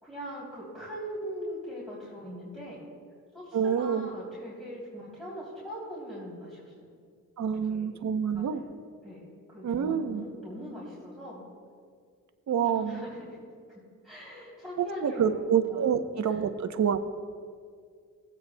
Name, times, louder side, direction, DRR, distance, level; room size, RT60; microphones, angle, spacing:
voice 1, 0.0-2.8 3.3-6.9 7.7-8.0 8.3-8.7 9.0-11.4 12.6-13.5 14.0-15.4 15.6-15.9 16.2-16.4, equal, ahead, -8 dB, 3.0 m, -41 dB
voice 2, 3.5-4.1 7.4-8.6 9.6-10.2 12.5-13.0 14.8-17.0, right 7 dB, 55° right, 8 dB, 0.8 m, -27 dB
20.0 x 8.4 x 2.2 m, 2.1 s
cardioid pair, 75°, 34 cm